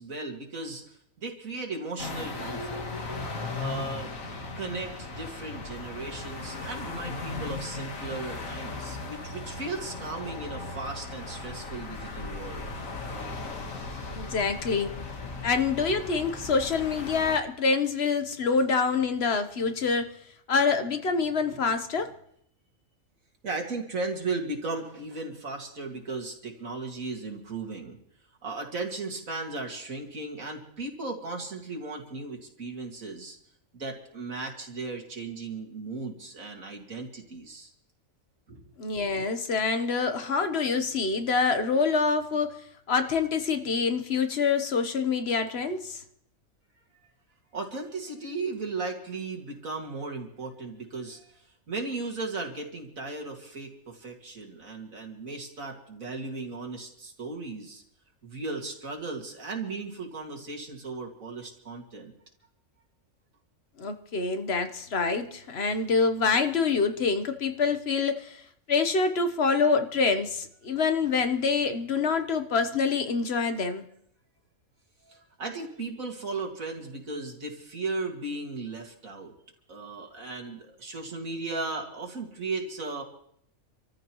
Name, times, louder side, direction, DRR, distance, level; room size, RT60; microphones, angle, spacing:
voice 1, 0.0-2.8 3.6-4.1 4.6-12.7 21.5-21.6 23.4-28.0 28.4-33.4 33.7-37.7 38.5-38.7 47.5-57.8 58.2-62.1 75.1-79.3 79.7-83.0, right 3 dB, 75° right, 2.6 m, -36 dB
sound 1, 2.0-17.4, left 3 dB, 75° left, 1.8 m, -37 dB
voice 2, 14.2-14.9 15.4-20.1 20.5-22.1 38.8-42.5 42.9-46.0 63.8-68.4 68.7-73.9, left 4 dB, 50° left, 1.2 m, -26 dB
27.5 x 14.0 x 3.1 m
omnidirectional pair, 1.4 m